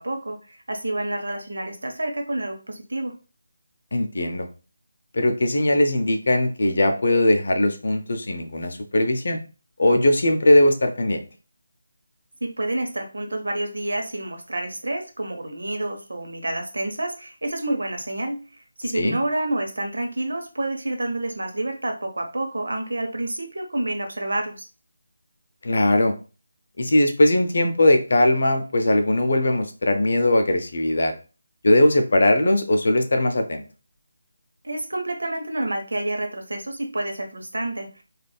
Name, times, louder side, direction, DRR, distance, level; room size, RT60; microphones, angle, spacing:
voice 1, 0.0-3.1 12.4-24.7 34.6-38.0, right 1 dB, 70° right, 3 dB, 0.7 m, -29 dB
voice 2, 3.9-4.5 5.1-9.4 9.8-11.2 18.9-19.2 25.6-26.1 26.8-31.1 31.6-33.6, left 1 dB, 60° left, 6 dB, 0.5 m, -20 dB
3.2 x 2.4 x 2.2 m, 0.34 s
figure-of-eight pair, 155°, 0 cm